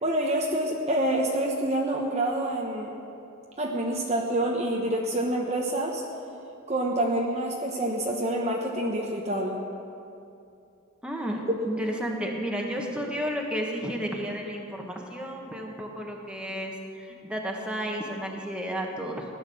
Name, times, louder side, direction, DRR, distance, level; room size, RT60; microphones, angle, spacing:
voice 1, 0.0-3.0 3.6-6.0 6.7-9.6, right 1 dB, 30° right, 0 dB, 1.1 m, -27 dB
voice 2, 11.0-19.2, equal, 5° right, 0 dB, 1.6 m, -32 dB
17.0 x 11.5 x 7.1 m, 2.6 s
head